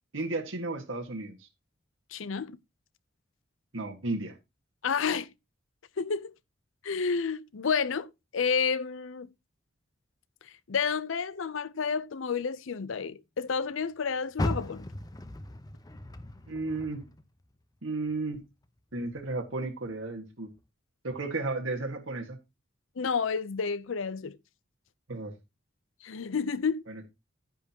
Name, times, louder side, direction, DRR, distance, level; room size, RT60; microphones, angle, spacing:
voice 1, 0.1-1.5 3.7-4.3 16.5-17.0 17.8-18.4 18.9-20.5 21.0-22.4 25.1-25.3 26.9-27.1, right 2 dB, 80° right, 1.7 m, -33 dB
voice 2, 2.1-2.6 4.8-5.3 6.0-6.3 6.8-9.3 10.7-14.9 23.0-24.4 26.0-26.8, left 5 dB, 85° left, 0.6 m, -30 dB
Car, 14.3-17.6 18.0-19.4 19.8-19.9 20.5-20.6, left 1 dB, 20° left, 0.7 m, -36 dB
10.5 x 10.0 x 2.8 m
head